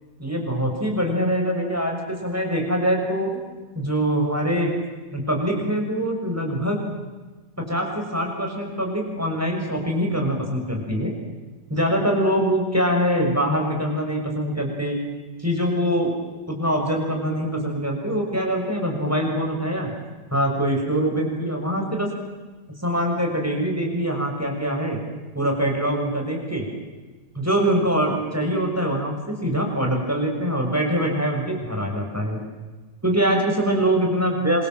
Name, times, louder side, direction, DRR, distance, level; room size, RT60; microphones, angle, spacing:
voice 1, 0.2-3.3 3.7-4.7 5.1-6.8 7.6-11.1 11.7-15.0 15.4-16.2 16.5-19.9 20.3-22.1 22.8-25.0 25.3-26.7 27.3-32.4 33.0-34.7, equal, 10° right, 1 dB, 6.3 m, -23 dB
27.5 x 25.5 x 7.8 m, 1.3 s
omnidirectional pair, 1.9 m